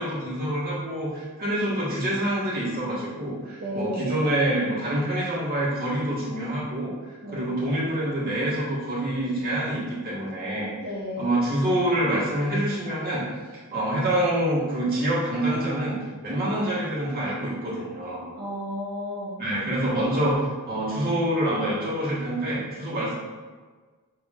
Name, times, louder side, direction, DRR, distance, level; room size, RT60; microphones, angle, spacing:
voice 1, 0.0-6.9 7.3-10.7 11.2-13.2 13.5-18.3 19.4-20.4 20.7-23.1, right 1 dB, 45° right, -7 dB, 1.4 m, -26 dB
voice 2, 3.6-4.1 7.2-7.4 10.8-11.3 18.3-19.3, equal, 70° right, -8 dB, 1.0 m, -32 dB
5.8 x 3.3 x 2.4 m, 1.4 s
head